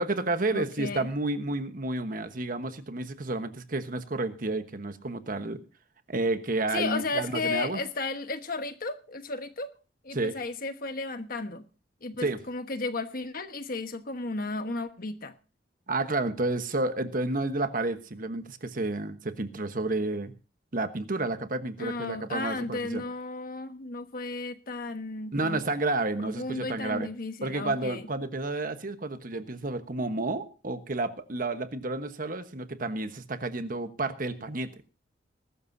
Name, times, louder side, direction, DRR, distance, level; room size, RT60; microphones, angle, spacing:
voice 1, 0.0-5.6 6.1-7.8 10.1-10.4 12.2-12.4 15.9-20.3 20.7-23.0 25.3-27.1 27.4-34.7, right 2 dB, 50° right, 10 dB, 1.2 m, -30 dB
voice 2, 0.5-1.1 6.7-9.7 10.0-11.6 12.0-15.3 21.8-25.6 26.2-28.1, left 3 dB, 50° left, 9 dB, 1.3 m, -34 dB
21.0 x 12.5 x 2.7 m, 0.33 s
head